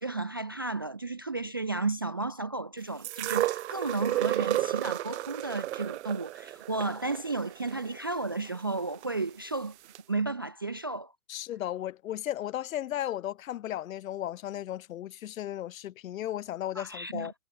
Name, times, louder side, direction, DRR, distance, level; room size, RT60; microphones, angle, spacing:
voice 1, 0.0-9.8 10.1-11.1 16.8-17.3, right 3 dB, 20° right, 0.3 m, -33 dB
sound 1, 3.0-9.1 9.9-10.0, right 15 dB, 55° right, 0.6 m, -32 dB
voice 2, 11.3-17.3, left 12 dB, 70° left, 1.6 m, -35 dB
supercardioid pair, 165°, 42 cm